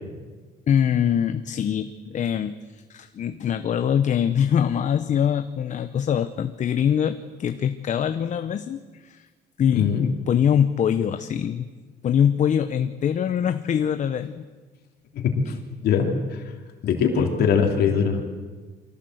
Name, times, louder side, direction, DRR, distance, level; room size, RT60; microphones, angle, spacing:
voice 1, 0.7-9.3 9.6-11.7 12.0-14.5 15.5-15.6 17.2-17.5, left 8 dB, 45° left, 10 dB, 0.9 m, -23 dB
voice 2, 9.7-10.0 15.1-15.3 15.8-16.1 16.8-18.2, left 7 dB, 70° left, 3 dB, 3.2 m, -21 dB
24.0 x 17.0 x 8.0 m, 1.4 s
cardioid pair, 110°, 17 cm